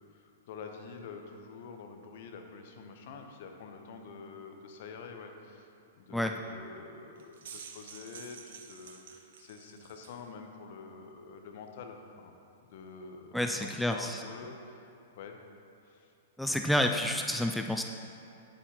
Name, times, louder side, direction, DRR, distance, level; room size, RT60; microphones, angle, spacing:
voice 1, 0.1-5.7 6.0-12.3 12.7-13.3 13.6-14.9 15.1-15.4 15.8-16.1, left 5 dB, 55° left, 4 dB, 0.9 m, -47 dB
sound 1, 7.2-10.2, right 7 dB, 60° right, 0.7 m, -49 dB
voice 2, 13.3-14.2 16.4-17.8, left 1 dB, 5° left, 4 dB, 0.3 m, -29 dB
9.7 x 8.4 x 2.9 m, 2.6 s
figure-of-eight pair, 105°, 0 cm